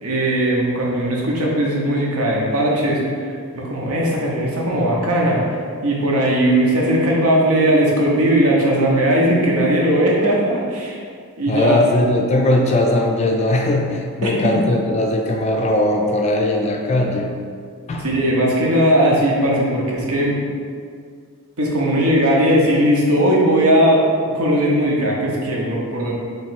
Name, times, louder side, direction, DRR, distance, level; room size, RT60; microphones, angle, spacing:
voice 1, 0.0-11.0 11.4-11.8 14.2-14.5 16.7-16.8 18.0-20.4 21.6-24.0 24.3-26.1, right 1 dB, 75° right, -3 dB, 0.8 m, -18 dB
voice 2, 11.5-17.3 17.9-18.1, left 1 dB, 30° left, 1 dB, 0.3 m, -19 dB
3.2 x 3.0 x 4.5 m, 2.1 s
head